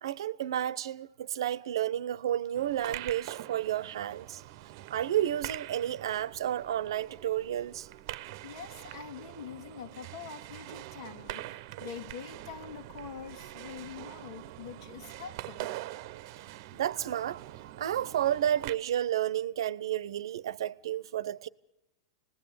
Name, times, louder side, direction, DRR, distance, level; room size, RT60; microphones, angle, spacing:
voice 1, 0.0-4.4 4.9-7.9 16.7-21.5, right 11 dB, 85° right, 0.9 m, -31 dB
sound 1, 2.5-18.7, right 15 dB, 55° right, 0.8 m, -44 dB
voice 2, 8.4-15.7, left 7 dB, 80° left, 2.1 m, -45 dB
29.0 x 19.5 x 8.8 m
supercardioid pair, 145°, 2 cm